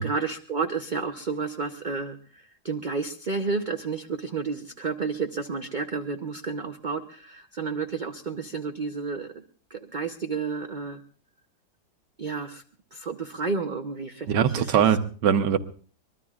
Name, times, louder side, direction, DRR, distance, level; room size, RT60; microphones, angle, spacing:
voice 1, 0.0-9.4 9.7-11.0 12.2-12.6 12.9-14.9, right 4 dB, 45° right, 6 dB, 0.6 m, -31 dB
voice 2, 14.3-15.6, right 8 dB, 75° right, 9 dB, 1.6 m, -21 dB
24.0 x 21.5 x 2.4 m, 0.42 s
omnidirectional pair, 1.9 m